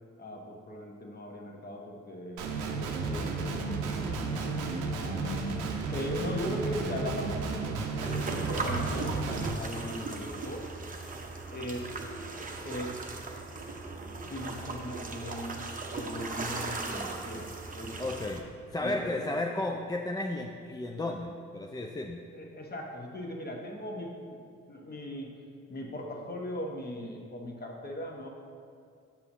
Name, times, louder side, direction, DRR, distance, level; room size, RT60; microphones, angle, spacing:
voice 1, 0.2-5.6 5.9-7.8 8.3-10.6 11.5-11.9 12.6-13.0 14.3-17.5 17.7-18.0 18.8-19.4 22.1-24.4 24.7-25.4 25.7-28.3, left 1 dB, 30° left, 1 dB, 1.0 m, -39 dB
Guitar, 2.4-9.5, right 4 dB, 80° right, 0.6 m, -33 dB
sound 1, 8.0-18.4, right 3 dB, 25° right, 0.7 m, -38 dB
voice 2, 18.0-18.5 18.7-22.2, left 2 dB, 15° left, 1 dB, 0.4 m, -33 dB
7.2 x 5.6 x 2.7 m, 2.4 s
hypercardioid pair, 50°, 31 cm